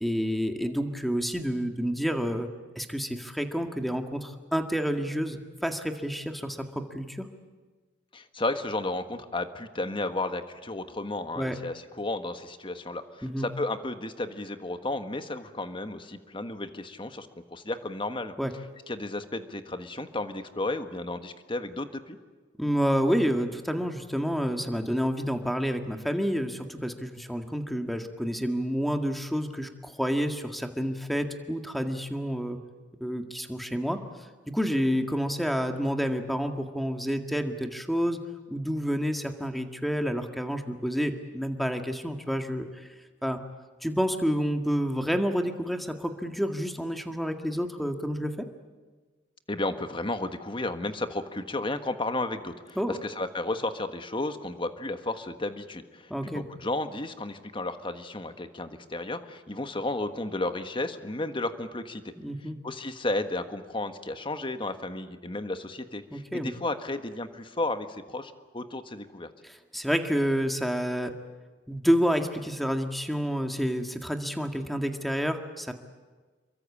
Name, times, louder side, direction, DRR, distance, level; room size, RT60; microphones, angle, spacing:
voice 1, 0.0-2.5 2.8-7.3 11.4-11.6 13.2-13.5 18.4-18.5 22.6-32.6 33.0-34.0 34.5-38.2 38.5-42.9 43.2-43.4 43.8-48.5 52.8-53.0 56.1-56.4 62.2-62.6 66.1-66.5 69.4-71.1 71.7-75.7, equal, ahead, 5 dB, 1.9 m, -29 dB
voice 2, 8.1-18.3 18.9-22.2 49.5-62.1 62.6-69.3, left 2 dB, 30° left, 9 dB, 1.5 m, -33 dB
28.0 x 23.5 x 8.6 m, 1.3 s
head